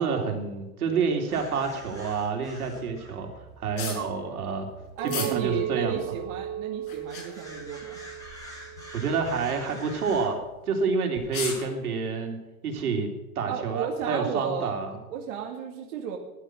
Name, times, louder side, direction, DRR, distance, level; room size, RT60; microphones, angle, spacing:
voice 1, 0.0-4.7 5.0-6.0 8.9-10.4 10.6-13.1 13.3-15.0, right 5 dB, 80° right, 3 dB, 3.4 m, -28 dB
sound 1, 1.3-10.3, equal, 10° left, 7.0 m, -47 dB
sound 2, 3.8-4.0 5.1-5.3 5.9-6.0 6.8-7.4 8.2-8.4 8.8-8.9 9.5-9.8 10.7-10.8 11.1-11.7, left 5 dB, 70° left, 6.4 m, -35 dB
Chink clink, 5.0-9.3 9.8-10.2, right 10 dB, 30° right, 3.2 m, -36 dB
voice 2, 5.0-8.0 13.5-14.8 15.1-16.2, right 8 dB, 55° right, 1 dB, 2.3 m, -34 dB
15.0 x 11.0 x 6.3 m, 1.1 s
hypercardioid pair, 125°, 44 cm